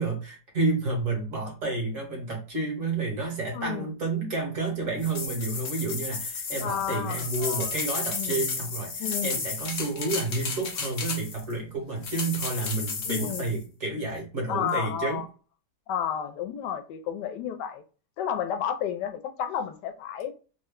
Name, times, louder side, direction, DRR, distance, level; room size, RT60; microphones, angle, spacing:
voice 1, 0.0-15.2, right 3 dB, 50° right, 1.5 m, -30 dB
voice 2, 3.5-3.9 6.6-7.7 8.1-8.4 9.0-9.4 13.1-13.5 14.5-15.3 15.9-17.8 18.2-20.3, left 8 dB, 85° left, 1.2 m, -31 dB
sound 1, 5.0-11.5 12.0-13.6, left 4 dB, 55° left, 0.7 m, -33 dB
3.3 x 2.1 x 3.6 m
omnidirectional pair, 1.8 m